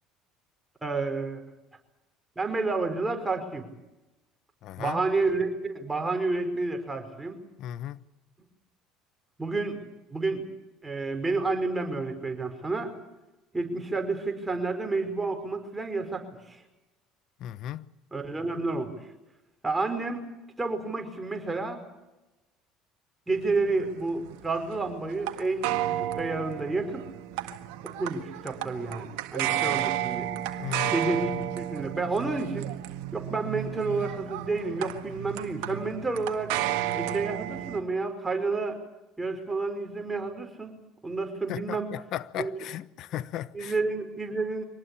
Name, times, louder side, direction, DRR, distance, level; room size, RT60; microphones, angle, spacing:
voice 1, 0.8-1.4 2.4-3.7 4.8-7.4 9.4-9.8 10.1-10.4 10.8-12.9 13.5-16.6 18.1-19.0 19.6-20.3 20.6-21.8 23.3-27.0 27.8-30.3 30.9-32.7 33.1-36.5 36.9-38.8 39.2-40.7 41.0-41.9 42.4-42.5 43.5-44.6, right 3 dB, 15° right, 5.1 m, -30 dB
voice 2, 4.6-5.0 7.6-8.0 17.4-17.9 29.4-29.8 30.6-30.9 41.5-43.7, left 12 dB, 60° left, 1.0 m, -36 dB
sound 1, 23.4-37.8, right 12 dB, 75° right, 1.7 m, -33 dB
24.5 x 19.5 x 8.6 m
hypercardioid pair, 70°, 0 cm